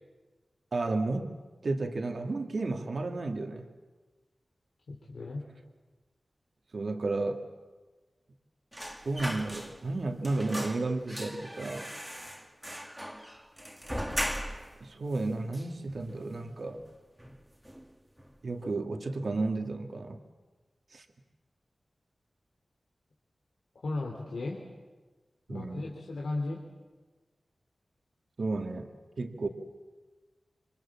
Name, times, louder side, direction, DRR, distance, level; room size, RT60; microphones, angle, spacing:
voice 1, 0.7-1.3 1.6-3.7 6.7-7.5 9.0-11.9 14.8-16.8 18.4-20.2 20.9-21.0 25.5-25.9 28.4-28.9 29.2-29.5, right 3 dB, 60° right, 4 dB, 2.3 m, -32 dB
voice 2, 4.9-5.4 23.8-24.6 25.5-26.6, left 2 dB, 85° left, -1 dB, 3.3 m, -35 dB
sound 1, 8.7-10.0 10.2-14.8 15.1-15.2 15.5-16.3 16.7-16.9 17.2-17.9 18.2-18.4, equal, 5° right, 2.1 m, -38 dB
28.0 x 25.5 x 7.4 m, 1.3 s
wide cardioid pair, 95°, 0 cm